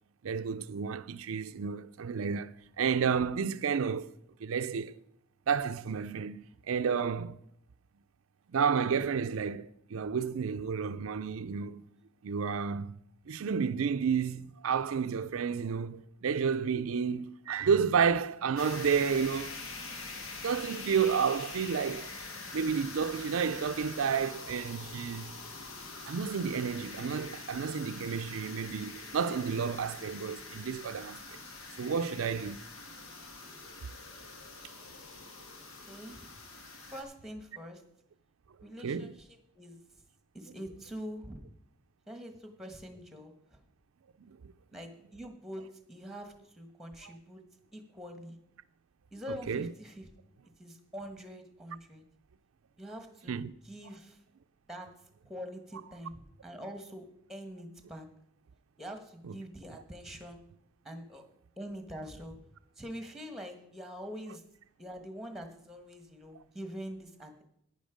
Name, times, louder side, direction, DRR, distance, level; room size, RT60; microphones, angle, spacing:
voice 1, 0.2-4.1 4.4-5.0 5.5-7.4 8.5-11.8 12.2-19.6 20.4-22.2 22.5-25.4 26.1-31.4 31.8-32.6 38.8-39.1 44.2-44.5 49.5-49.7 53.3-53.5 59.2-59.3, right 6 dB, 85° right, 0.4 m, -31 dB
sound 1, 18.6-37.0, left 3 dB, 90° left, 1.8 m, -44 dB
voice 2, 35.6-36.4 36.9-37.8 38.6-39.8 40.3-41.5 42.1-43.6 44.7-47.4 47.7-48.4 49.1-50.1 50.6-52.0 52.8-54.2 54.7-54.9 55.2-57.0 57.3-58.1 58.8-60.4 60.8-61.2 61.6-62.4 62.8-64.4 64.8-67.4, equal, ahead, 1.3 m, -44 dB
10.5 x 9.7 x 5.0 m
head